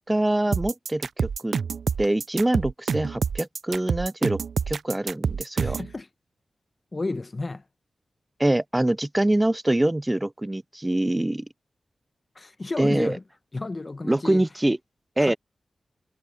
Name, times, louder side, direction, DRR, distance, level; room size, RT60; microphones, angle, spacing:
voice 1, 0.0-1.5 2.0-4.4 4.7-5.8 8.4-11.5 12.8-13.2 14.0-14.8 15.2-15.3, right 1 dB, 15° right, 0.5 m, -24 dB
sound 1, 0.5-5.9, right 6 dB, 80° right, 0.4 m, -27 dB
voice 2, 5.6-6.1 6.9-7.6 12.3-13.2 13.5-14.4 15.2-15.4, left 3 dB, 35° left, 1.0 m, -32 dB
cardioid pair, 70°, 0 cm